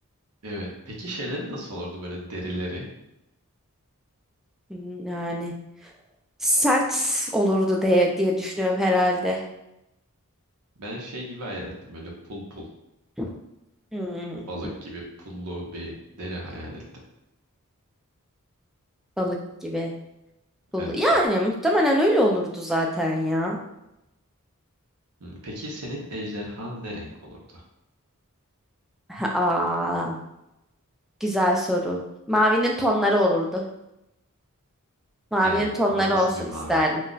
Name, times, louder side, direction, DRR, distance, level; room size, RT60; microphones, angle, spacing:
voice 1, 0.4-2.9 10.8-12.7 14.5-16.8 20.8-20.9 25.2-27.6 35.4-36.8, equal, 85° right, -2 dB, 0.8 m, -35 dB
voice 2, 4.7-5.5 6.4-9.4 13.2-13.3 13.9-14.5 19.2-19.9 20.7-23.6 29.1-30.2 31.2-32.0 32.3-33.6 35.3-37.0, equal, ahead, -1 dB, 0.3 m, -23 dB
2.3 x 2.1 x 3.8 m, 0.88 s
head